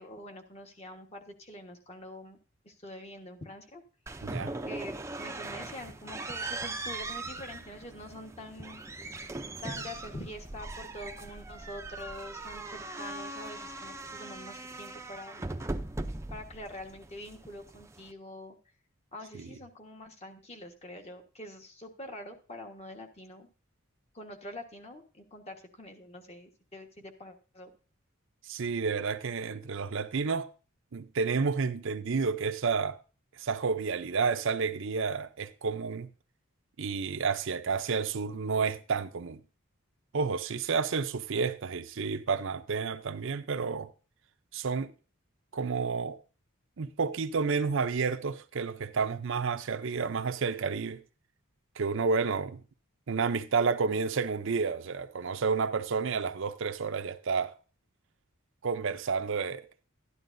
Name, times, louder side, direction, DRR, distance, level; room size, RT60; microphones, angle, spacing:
voice 1, 0.0-2.4 2.6-3.8 4.6-9.0 9.6-15.6 16.3-18.6 19.1-23.5 24.1-27.7, left 1 dB, 30° left, 1.4 m, -45 dB
sound 1, 4.1-18.1, right 2 dB, 15° right, 0.5 m, -40 dB
voice 2, 4.2-4.5 19.4-19.5 28.4-30.5 30.9-33.0 33.4-36.1 36.8-39.4 40.1-43.9 44.5-44.9 45.5-46.2 46.8-51.0 51.8-52.6 53.1-57.6 58.6-59.7, right 5 dB, 60° right, 0.5 m, -30 dB
12.0 x 11.0 x 2.6 m
head